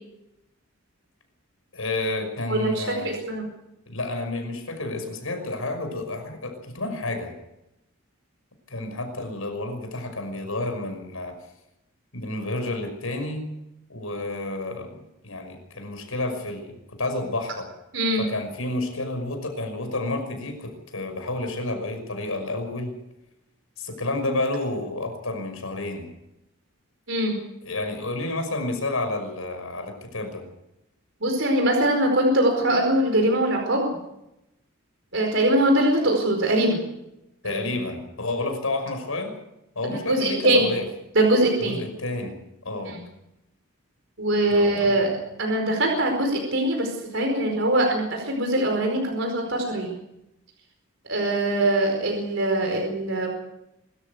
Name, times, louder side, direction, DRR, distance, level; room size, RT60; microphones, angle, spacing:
voice 1, 1.7-3.2 3.9-7.3 8.7-11.4 12.1-13.5 13.9-15.0 15.2-17.7 18.2-22.9 23.8-26.1 27.6-30.4 37.4-39.3 39.8-40.8 41.6-42.4 42.6-43.0 44.5-44.7, left 2 dB, 80° left, 6 dB, 5.8 m, -30 dB
voice 2, 2.5-3.4 17.9-18.3 27.1-27.4 31.2-33.9 35.1-36.8 37.4-37.6 39.8-40.7 41.1-41.8 42.8-43.0 44.2-49.9 51.1-53.3, right 1 dB, 60° right, 2 dB, 4.8 m, -22 dB
24.5 x 14.0 x 8.2 m, 0.88 s
head